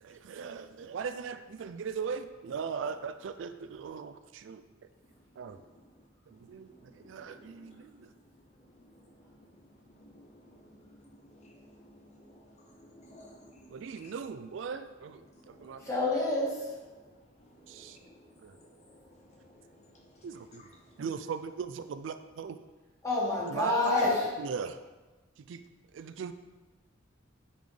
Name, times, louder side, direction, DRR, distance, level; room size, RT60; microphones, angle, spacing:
voice 1, 0.0-4.6 5.4-5.6 6.3-8.1 13.7-16.0 17.7-18.0 20.2-20.6 21.0-22.6 23.5-24.0 24.4-24.8 25.5-25.6 25.9-26.3, right 6 dB, 70° right, 10 dB, 0.4 m, -39 dB
voice 2, 6.9-7.8 8.9-14.1 15.3-15.9 16.9-17.1 17.4-18.1 18.9-20.7, equal, 35° left, 0 dB, 0.7 m, -57 dB
voice 3, 15.8-16.6 23.0-24.3, left 2 dB, 15° left, -5 dB, 1.9 m, -28 dB
10.0 x 4.2 x 3.3 m, 1.2 s
head